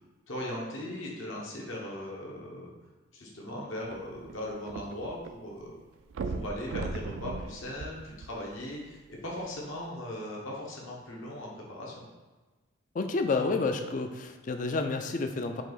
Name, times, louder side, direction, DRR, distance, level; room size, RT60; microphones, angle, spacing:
voice 1, 0.3-2.7 3.1-5.8 6.2-12.1, left 1 dB, 70° left, -3 dB, 1.0 m, -39 dB
sound 1, 3.8-5.3 5.6-5.7 6.1-8.7 9.4-9.5, right 3 dB, 65° right, 0.3 m, -37 dB
voice 2, 12.9-15.6, left 3 dB, 40° left, 6 dB, 0.3 m, -30 dB
4.7 x 2.8 x 3.9 m, 1.2 s
head